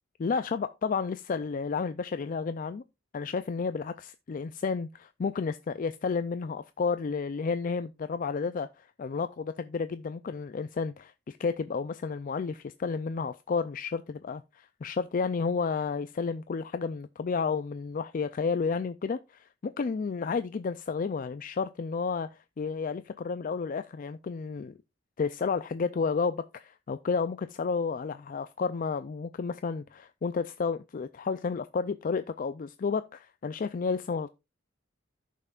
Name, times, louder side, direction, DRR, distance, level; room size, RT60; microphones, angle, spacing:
voice 1, 0.2-2.8 3.1-24.8 25.2-34.3, left 5 dB, 45° left, 0.4 m, -31 dB
14.5 x 5.6 x 2.4 m
head